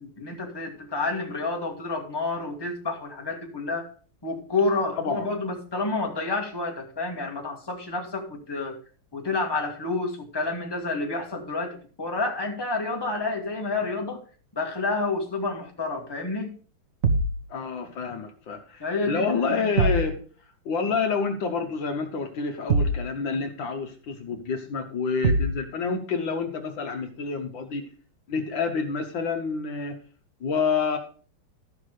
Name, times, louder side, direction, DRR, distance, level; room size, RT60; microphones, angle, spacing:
voice 1, 0.0-3.9 4.2-8.8 9.1-14.2 14.5-16.5 18.8-20.1, left 3 dB, 10° left, 1 dB, 1.7 m, -29 dB
voice 2, 5.0-5.3 17.5-20.1 20.6-27.9 28.3-30.0 30.4-31.0, left 5 dB, 65° left, 6 dB, 1.7 m, -28 dB
sound 1, 17.0-17.4 19.8-20.1 22.7-23.1 25.2-25.6, right 2 dB, 50° right, 1.2 m, -22 dB
13.0 x 5.9 x 4.9 m, 0.41 s
omnidirectional pair, 2.3 m